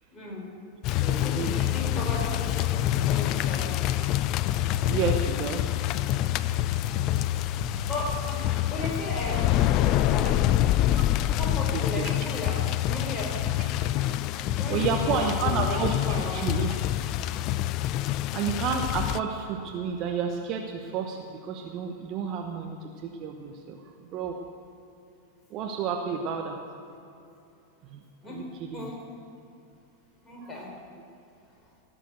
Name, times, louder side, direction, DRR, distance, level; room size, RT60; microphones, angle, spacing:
voice 1, 0.1-0.5 1.1-3.7 7.9-10.7 11.3-13.5 14.6-16.6 28.2-28.5 28.7-29.0 30.2-30.7, left 1 dB, 15° left, -3 dB, 4.2 m, -36 dB
sound 1, 0.8-19.2, left 13 dB, 40° left, 0.4 m, -26 dB
voice 2, 1.0-1.5 1.8-1.9 4.8-5.7 11.7-12.1 14.7-16.0 16.3-16.7 18.3-23.8 24.1-24.4 25.5-26.6 27.9-28.9 30.4-30.5, right 6 dB, 35° right, 3 dB, 1.0 m, -31 dB
16.0 x 7.4 x 8.0 m, 2.7 s
figure-of-eight pair, 90°, 0 cm